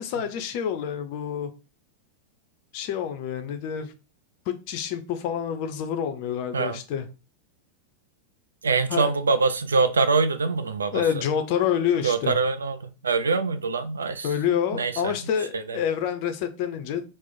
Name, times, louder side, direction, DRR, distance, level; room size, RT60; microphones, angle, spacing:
voice 1, 0.0-1.5 2.7-3.9 4.5-7.1 8.9-9.1 10.9-12.4 14.2-17.0, left 8 dB, 45° left, 0.5 m, -27 dB
voice 2, 8.6-11.2 12.0-14.3 14.7-15.1 15.5-15.8, right 4 dB, 70° right, 0.3 m, -24 dB
3.0 x 2.0 x 3.9 m
figure-of-eight pair, 90°, 0 cm